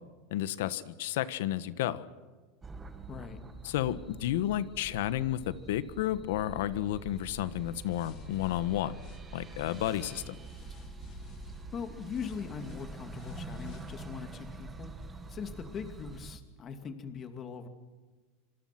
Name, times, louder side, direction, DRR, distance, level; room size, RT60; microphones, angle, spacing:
voice 1, 0.3-2.0 3.6-9.0 9.3-10.4, left 12 dB, 75° left, 14 dB, 1.4 m, -32 dB
sound 1, 2.6-16.4, right 3 dB, 15° right, 2.1 m, -46 dB
voice 2, 3.1-3.4 11.7-14.9 15.3-17.7, left 6 dB, 30° left, 7 dB, 2.6 m, -41 dB
sound 2, 7.1-14.1, left 8 dB, 50° left, 2.8 m, -51 dB
26.5 x 26.0 x 6.1 m, 1.3 s
supercardioid pair, 140°, 0 cm